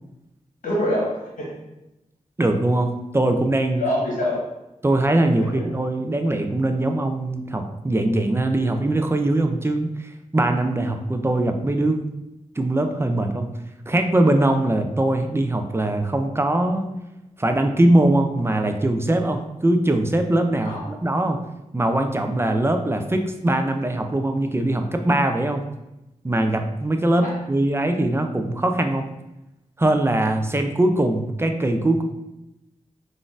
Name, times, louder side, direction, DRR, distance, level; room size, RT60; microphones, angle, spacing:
voice 1, 0.6-1.5 3.8-4.4 5.5-5.6 20.6-20.9 27.2-27.3, left 1 dB, 75° left, -4 dB, 1.2 m, -25 dB
voice 2, 2.4-3.8 4.8-12.0 12.6-13.5 13.9-16.9 17.4-21.4 21.7-25.7 26.2-29.1 29.8-32.0, right 1 dB, 20° right, 5 dB, 0.4 m, -21 dB
3.7 x 2.5 x 2.4 m, 0.93 s
cardioid pair, 60°, 14 cm